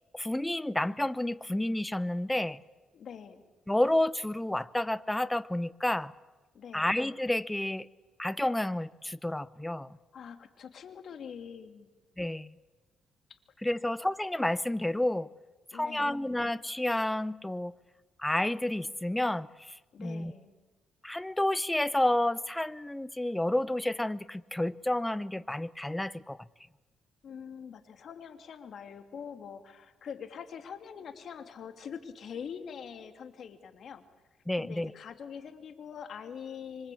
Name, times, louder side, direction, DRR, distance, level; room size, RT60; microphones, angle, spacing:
voice 1, 0.1-2.6 3.7-6.1 6.7-7.9 8.2-10.0 12.2-12.5 13.6-15.3 15.7-17.7 18.2-20.3 21.0-26.4 34.5-34.9, left 1 dB, 10° left, 0.8 m, -30 dB
voice 2, 2.9-3.4 6.5-6.9 10.1-11.9 13.3-13.4 13.6-13.7 15.7-16.2 19.9-20.5 27.2-34.1 34.6-36.9, left 7 dB, 60° left, 2.8 m, -44 dB
26.0 x 25.0 x 8.6 m
cardioid pair, 90°, 0 cm